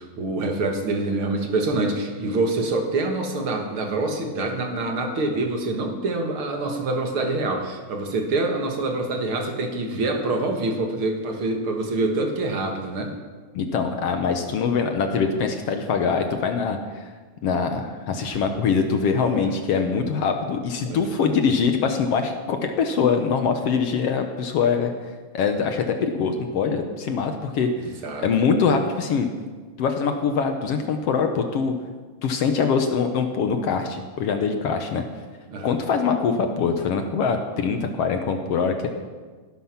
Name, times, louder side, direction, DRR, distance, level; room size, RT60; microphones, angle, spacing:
voice 1, 0.0-13.1 19.2-19.5 20.8-21.0 27.8-28.3 35.5-35.7, right 2 dB, 50° right, 3 dB, 1.9 m, -26 dB
voice 2, 13.5-17.1 17.4-24.9 25.3-27.7 28.2-29.3 29.8-31.7 32.2-35.0 35.6-38.9, left 5 dB, 70° left, 6 dB, 1.5 m, -23 dB
17.0 x 11.5 x 5.9 m, 1.4 s
omnidirectional pair, 4.0 m